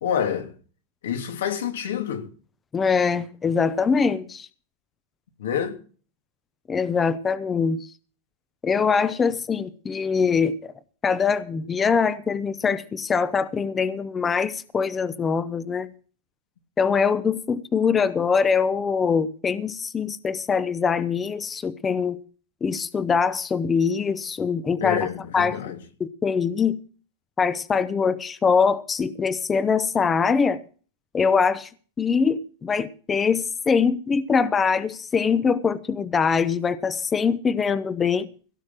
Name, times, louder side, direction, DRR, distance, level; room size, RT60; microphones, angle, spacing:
voice 1, 0.0-0.5 1.0-2.3 5.4-5.8 24.8-25.8, left 8 dB, 90° left, 2.9 m, -27 dB
voice 2, 2.7-4.5 6.7-7.8 8.6-10.5 11.0-15.9 16.8-22.2 22.6-25.0 25.3-25.6 26.0-26.8 27.4-30.6 31.1-31.7 32.0-38.3, left 5 dB, 15° left, 0.6 m, -23 dB
17.0 x 6.4 x 7.4 m
supercardioid pair, 160°, 0 cm